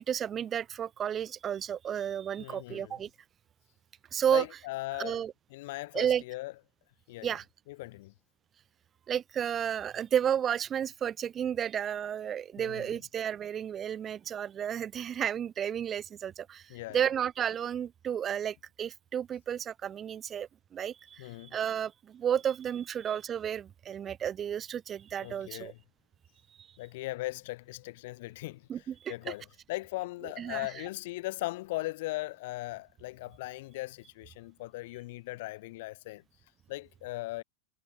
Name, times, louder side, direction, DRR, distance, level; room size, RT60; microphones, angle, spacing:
voice 1, 0.0-3.1 4.1-4.5 5.0-5.3 5.9-6.2 7.2-7.4 9.1-25.7 28.7-29.3 30.4-30.8, right 9 dB, 25° right, 0.6 m, -32 dB
voice 2, 2.4-3.0 4.3-5.2 5.5-6.5 7.1-7.4 7.7-8.1 12.6-12.9 16.7-17.1 21.2-21.6 25.2-25.8 26.8-28.7 29.1-36.2 36.7-37.4, left 20 dB, 50° left, 0.4 m, -38 dB
figure-of-eight pair, 90°, 0 cm